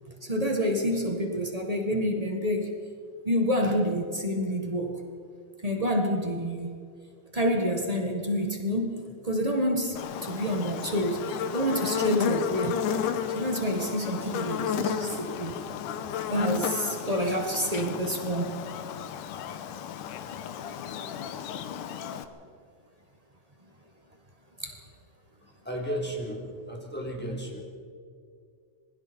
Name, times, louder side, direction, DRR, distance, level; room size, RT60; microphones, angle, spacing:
voice 1, 0.2-2.7 3.2-5.0 5.6-6.8 7.3-12.8 13.3-15.5 16.3-18.7 24.6-24.8, equal, 85° right, 3 dB, 0.3 m, -28 dB
Buzz, 10.0-22.2, left 8 dB, 85° left, 2.5 m, -33 dB
voice 2, 25.4-27.6, equal, 5° left, -1 dB, 3.5 m, -34 dB
27.0 x 22.0 x 4.5 m, 2.3 s
omnidirectional pair, 3.6 m